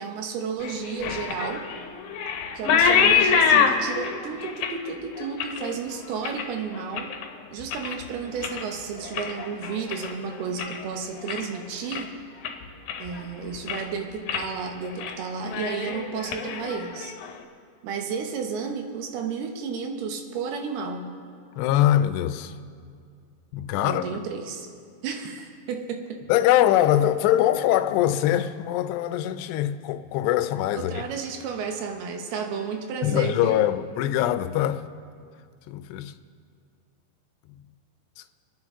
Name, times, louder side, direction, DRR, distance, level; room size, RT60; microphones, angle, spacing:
voice 1, 0.0-1.7 2.5-7.1 7.5-12.1 13.0-17.1 17.8-21.2 23.8-24.7 25.0-26.3 30.7-33.7, right 6 dB, 75° right, 2.9 m, -32 dB
sound 1, 0.6-7.3 7.6-8.1 8.4-10.8 11.1-11.6 11.9-12.0 12.4-13.2 13.5-13.9 14.3-14.5 14.8-15.2 15.4-17.3, left 6 dB, 70° left, 2.4 m, -26 dB
voice 2, 21.6-22.5 23.5-24.0 26.3-31.0 33.0-34.8 35.7-36.2, left 12 dB, 85° left, 2.7 m, -22 dB
28.0 x 9.7 x 3.7 m
omnidirectional pair, 4.8 m